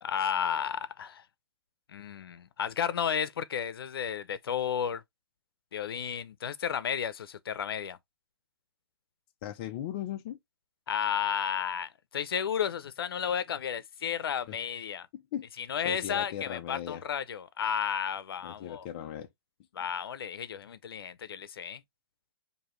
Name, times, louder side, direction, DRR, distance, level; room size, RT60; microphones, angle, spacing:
voice 1, 0.0-1.2 1.9-5.0 5.7-8.0 10.9-15.1 15.6-18.9 19.7-21.8, left 8 dB, 70° left, 0.6 m, -32 dB
voice 2, 9.4-10.4 14.5-14.6 15.1-15.5 15.8-17.0 18.4-19.3, left 11 dB, 20° left, 0.4 m, -38 dB
4.8 x 2.7 x 3.0 m
hypercardioid pair, 170°, 13 cm